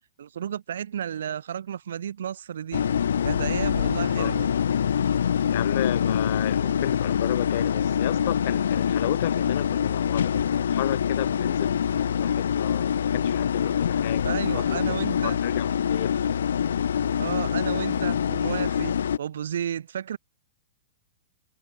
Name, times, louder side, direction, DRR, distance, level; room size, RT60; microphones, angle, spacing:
voice 1, 0.0-2.9 3.2-4.5 14.2-15.4 17.2-20.2, right 9 dB, 80° right, 1.0 m, -32 dB
sound 1, 2.7-19.2, left 8 dB, 85° left, 0.4 m, -25 dB
voice 2, 5.5-16.2, left 16 dB, 55° left, 1.2 m, -33 dB
hypercardioid pair, 140°, 0 cm